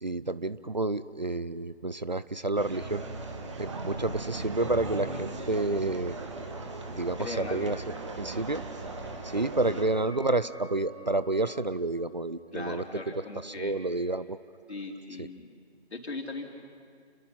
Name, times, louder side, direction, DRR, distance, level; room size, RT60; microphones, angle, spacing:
voice 1, 0.0-3.0 3.6-6.2 6.8-7.8 8.2-8.6 9.2-13.0 13.4-14.4 15.2-15.3, right 2 dB, 40° right, 15 dB, 0.5 m, -29 dB
sound 1, 2.5-9.8, right 2 dB, 25° right, 1.7 m, -38 dB
voice 2, 7.2-7.8 9.6-9.8 12.5-13.7 14.7-15.5 15.9-16.5, left 3 dB, 70° left, 1 dB, 3.9 m, -39 dB
sound 2, 8.5-13.9, right 1 dB, 10° left, 6.7 m, -51 dB
29.5 x 22.0 x 5.8 m, 2.1 s
figure-of-eight pair, 165°, 34 cm